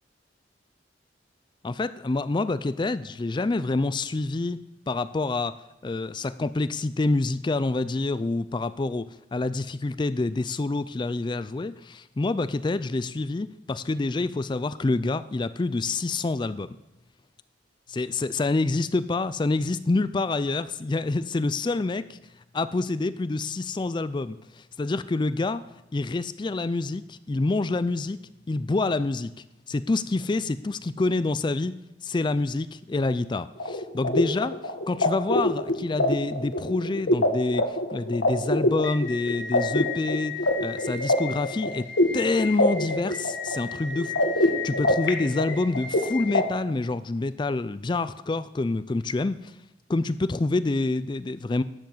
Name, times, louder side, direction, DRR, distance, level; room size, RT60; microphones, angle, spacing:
voice 1, 1.6-4.6 4.9-5.6 5.8-16.8 17.9-22.2 22.5-25.6 25.9-28.2 28.5-31.7 32.0-34.6 34.9-40.3 40.6-41.9 42.1-49.5 49.9-51.6, left 3 dB, 25° left, 14 dB, 0.4 m, -27 dB
sound 1, 33.6-46.4, left 1 dB, 75° left, 1.7 m, -25 dB
12.0 x 7.0 x 7.8 m, 0.97 s
head